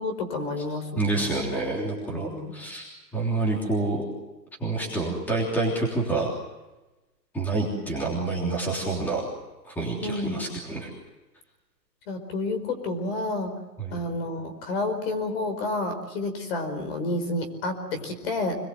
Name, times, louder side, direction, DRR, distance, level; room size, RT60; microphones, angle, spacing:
voice 1, 0.0-1.4 2.1-2.5 10.0-10.6 12.1-13.5 13.9-18.6, left 2 dB, 35° left, 8 dB, 4.8 m, -30 dB
voice 2, 0.9-4.0 4.6-6.3 7.3-9.3 9.6-10.9 13.8-14.0, right 2 dB, 5° left, -2 dB, 3.3 m, -28 dB
27.0 x 21.5 x 7.8 m, 1.1 s
hypercardioid pair, 170°, 50 cm